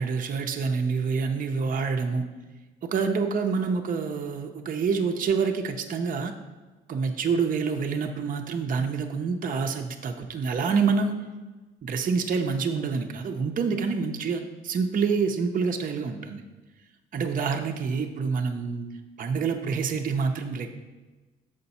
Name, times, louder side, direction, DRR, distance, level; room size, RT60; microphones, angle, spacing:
voice 1, 0.0-2.3 2.8-6.3 6.9-11.2 11.8-16.4 17.1-18.9 19.2-20.7, right 5 dB, 45° right, 4 dB, 0.6 m, -27 dB
6.7 x 5.1 x 4.2 m, 1.2 s
cardioid pair, 90°, 20 cm